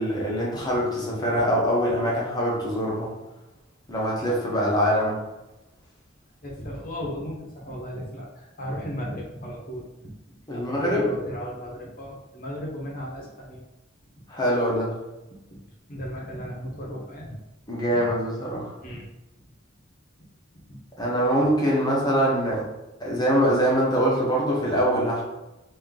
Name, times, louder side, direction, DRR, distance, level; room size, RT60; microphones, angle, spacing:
voice 1, 0.0-3.1 3.9-5.2 10.5-11.1 14.3-15.0 17.7-18.7 21.0-22.6 23.0-25.2, equal, 20° left, -5 dB, 1.2 m, -23 dB
voice 2, 6.4-13.6 15.5-15.6 15.9-17.3 17.9-18.1 18.8-19.1 20.7-20.8, equal, 45° left, -3 dB, 1.1 m, -36 dB
3.1 x 2.9 x 3.9 m, 0.99 s
head